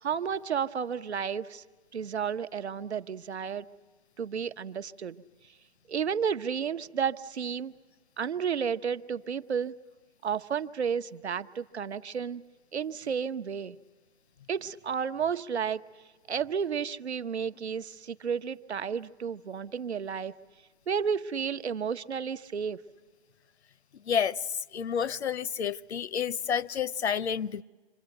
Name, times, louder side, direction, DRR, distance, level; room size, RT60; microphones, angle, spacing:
voice 1, 0.0-1.6 1.9-3.7 4.2-5.2 5.9-7.7 8.2-9.8 10.2-12.4 12.7-13.8 14.5-15.8 16.3-20.3 20.9-22.8, right 7 dB, 80° right, 1.1 m, -32 dB
voice 2, 24.1-24.4 24.7-27.6, left 7 dB, 80° left, 0.7 m, -29 dB
27.0 x 24.5 x 7.9 m
hypercardioid pair, 170°, 33 cm